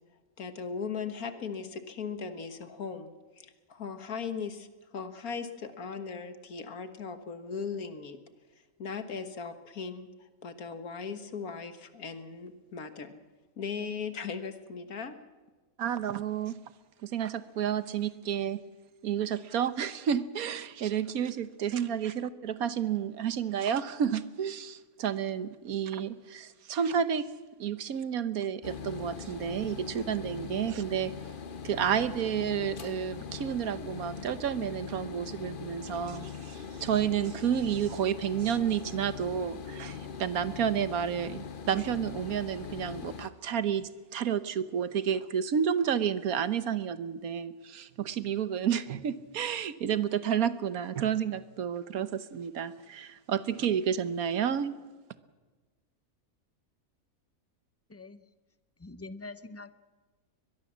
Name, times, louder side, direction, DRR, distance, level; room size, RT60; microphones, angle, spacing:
voice 1, 0.4-4.7 4.9-8.2 8.8-13.2 13.6-15.2, left 5 dB, 85° left, 9 dB, 1.9 m, -38 dB
voice 2, 15.8-16.5 17.0-18.6 19.0-27.2 27.6-31.1 31.6-54.8, right 8 dB, 85° right, 14 dB, 1.4 m, -31 dB
sound 1, 28.6-43.3, left 6 dB, 40° left, 1.0 m, -41 dB
voice 3, 58.8-59.7, left 2 dB, 15° left, 13 dB, 0.5 m, -44 dB
22.0 x 21.5 x 7.3 m, 1.3 s
omnidirectional pair, 1.5 m